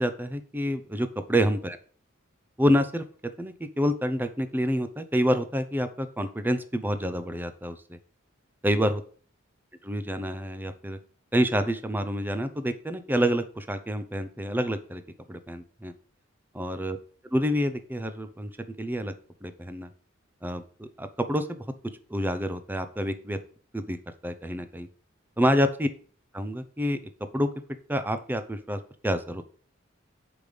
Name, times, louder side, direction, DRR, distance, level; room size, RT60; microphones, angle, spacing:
voice 1, 0.0-1.8 2.6-3.0 3.4-8.0 8.6-9.0 9.8-11.0 11.3-15.0 15.3-15.9 16.5-17.0 17.3-18.5 18.8-19.1 19.4-19.9 20.4-21.6 22.1-23.4 23.7-24.0 24.2-24.9 25.4-25.9 26.3-27.0 27.3-27.5 27.9-29.4, equal, 10° right, 10 dB, 0.6 m, -27 dB
8.0 x 5.2 x 5.1 m, 0.43 s
head